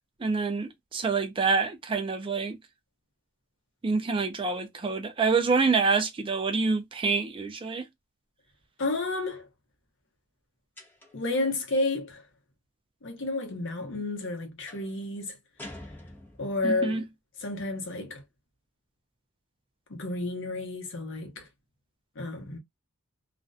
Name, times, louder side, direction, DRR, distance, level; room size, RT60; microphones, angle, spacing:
voice 1, 0.2-2.6 3.8-7.9 16.6-17.1, right 4 dB, 25° right, 0.3 m, -27 dB
voice 2, 8.8-9.5 11.1-12.2 13.0-15.4 16.4-17.0 17.4-18.2 19.9-21.5 22.2-22.6, left 2 dB, 55° left, 0.8 m, -31 dB
sound 1, 10.8-11.3 14.7-15.0 15.6-16.7, left 1 dB, 10° left, 0.8 m, -46 dB
2.4 x 2.1 x 2.5 m
head